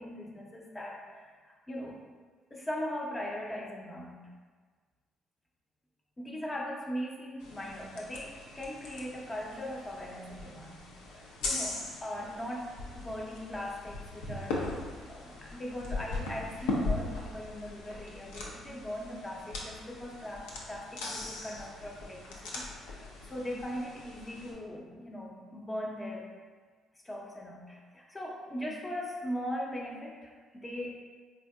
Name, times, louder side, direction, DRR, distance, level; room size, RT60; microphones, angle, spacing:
voice 1, 0.0-2.0 2.5-4.3 6.2-14.6 15.1-26.3 27.0-31.0, equal, 20° left, -2 dB, 0.7 m, -40 dB
sound 1, 7.4-24.5, left 3 dB, 75° left, 0.5 m, -40 dB
3.9 x 2.8 x 2.3 m, 1.5 s
hypercardioid pair, 45°, 0 cm